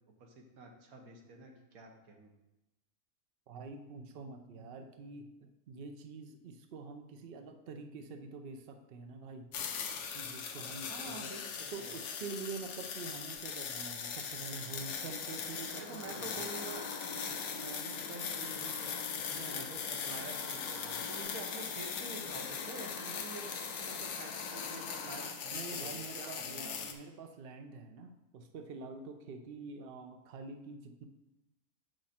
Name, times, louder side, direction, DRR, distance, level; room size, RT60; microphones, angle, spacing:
voice 1, 0.2-2.3 10.9-12.0 15.8-16.8 17.1-26.9 29.8-29.9, right 3 dB, 65° right, 2 dB, 1.6 m, -48 dB
voice 2, 3.5-9.5 10.1-11.3 11.7-16.4 25.5-31.0, right 4 dB, 50° right, 6 dB, 0.7 m, -46 dB
sound 1, 9.5-26.9, left 7 dB, 90° left, 1.3 m, -40 dB
sound 2, 14.0-25.3, left 4 dB, 70° left, 1.4 m, -47 dB
7.3 x 6.4 x 4.3 m, 0.97 s
omnidirectional pair, 1.6 m